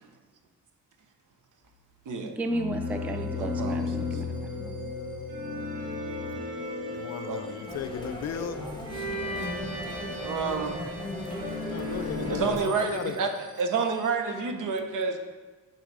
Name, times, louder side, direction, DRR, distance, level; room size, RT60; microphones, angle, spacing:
voice 1, 2.2-4.9, right 1 dB, 5° right, 6 dB, 0.4 m, -34 dB
sound 1, 2.4-12.5, left 3 dB, 50° right, 1.7 m, -35 dB
sound 2, 2.8-14.1, left 1 dB, 25° right, 0.7 m, -43 dB
voice 2, 3.3-3.8 7.3-7.6 10.2-10.8 11.7-11.8 12.3-13.3 13.6-15.2, right 5 dB, 65° right, 5 dB, 1.0 m, -29 dB
voice 3, 6.9-8.6 11.7-13.2, left 8 dB, 50° left, 10 dB, 0.5 m, -36 dB
sound 3, 7.7-12.6, left 1 dB, 15° left, 1.3 m, -38 dB
10.5 x 4.2 x 4.8 m, 1.3 s
cardioid pair, 140°, 33 cm